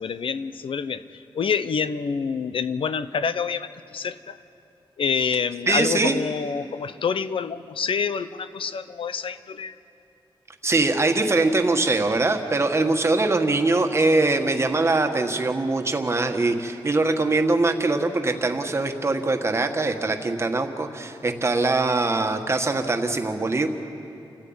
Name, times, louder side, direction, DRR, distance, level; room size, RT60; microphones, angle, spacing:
voice 1, 0.0-4.4 5.0-9.8, left 6 dB, 70° left, 13 dB, 0.8 m, -27 dB
voice 2, 5.7-6.2 10.6-23.7, right 2 dB, 30° right, 5 dB, 1.5 m, -22 dB
29.0 x 14.5 x 8.8 m, 2.7 s
wide cardioid pair, 135°, 9 cm